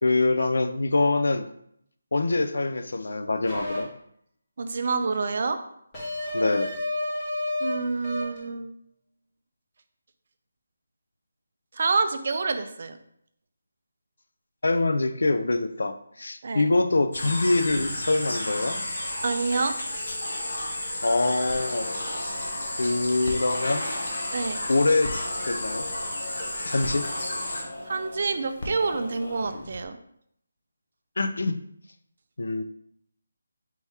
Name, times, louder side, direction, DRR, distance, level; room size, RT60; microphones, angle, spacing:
voice 1, 0.0-1.5 2.1-3.9 6.3-6.7 14.6-18.8 21.0-21.9 22.8-23.8 24.7-25.1 25.5-25.9 26.6-27.1 31.2-31.6 32.4-32.6, left 2 dB, 70° left, 8 dB, 0.4 m, -24 dB
sound 1, 3.5-3.8 5.9-7.7 8.0-8.4, left 2 dB, 15° left, 1.0 m, -30 dB
voice 2, 4.6-5.6 7.6-8.7 11.8-13.0 16.4-16.7 19.2-19.7 24.3-24.6 27.9-30.0, right 4 dB, 40° right, 9 dB, 0.3 m, -27 dB
sound 2, 17.1-27.6, left 1 dB, 50° left, 1.1 m, -32 dB
sound 3, 21.5-29.8, left 1 dB, 35° left, 0.7 m, -39 dB
4.5 x 2.8 x 3.4 m, 0.71 s
figure-of-eight pair, 175°, 0 cm